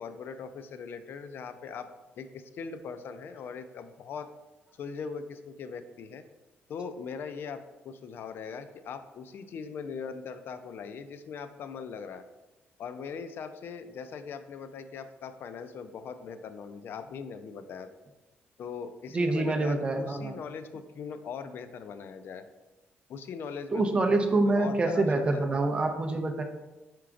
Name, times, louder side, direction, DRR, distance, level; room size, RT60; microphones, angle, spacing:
voice 1, 0.0-1.9 2.2-4.3 4.8-6.2 6.7-12.2 12.8-17.9 18.6-22.4 23.1-24.0 24.3-25.5, left 6 dB, 55° left, 10 dB, 0.3 m, -40 dB
voice 2, 19.1-20.4 23.7-26.4, right 2 dB, 25° right, 4 dB, 0.5 m, -26 dB
4.9 x 4.5 x 2.4 m, 1.1 s
cardioid pair, 135°, 4 cm